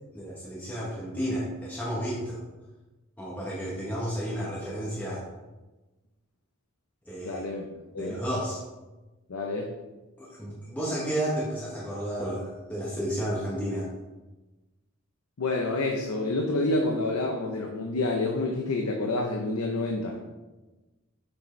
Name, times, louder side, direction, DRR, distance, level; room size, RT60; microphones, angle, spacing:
voice 1, 0.1-2.4 3.2-5.2 7.1-7.4 7.9-8.6 10.2-13.9, equal, 10° left, -7 dB, 1.0 m, -32 dB
voice 2, 7.3-7.6 7.9-8.2 9.3-9.7 15.4-20.3, left 2 dB, 90° left, 2 dB, 0.7 m, -28 dB
6.4 x 6.0 x 3.2 m, 1.1 s
head